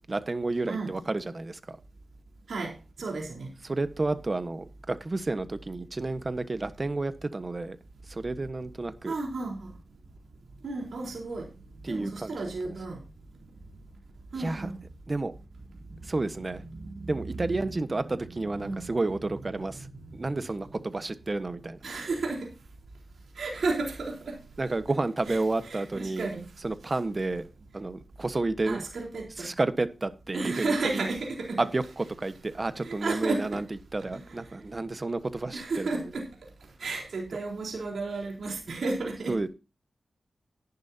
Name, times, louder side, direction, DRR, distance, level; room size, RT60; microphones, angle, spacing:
voice 1, 0.1-1.8 3.6-7.8 8.1-9.1 11.8-12.7 14.3-14.7 15.1-15.3 16.0-16.6 17.1-19.9 20.1-21.8 24.6-26.3 26.6-27.4 27.7-28.8 29.4-31.1 31.6-33.6 33.9-36.0 39.3-39.5, right 2 dB, 35° right, 1.3 m, -31 dB
voice 2, 2.5-3.5 9.1-9.7 10.6-11.5 11.8-13.0 14.3-14.8 15.9-16.3 16.6-17.6 18.4-18.9 20.0-20.3 21.8-22.5 23.3-24.4 25.3-26.4 28.6-29.5 30.3-31.6 32.8-33.6 34.0-34.3 35.5-36.3 36.8-39.4, right 3 dB, 75° right, 4.1 m, -33 dB
14.0 x 11.0 x 2.8 m
cardioid pair, 60°, 0 cm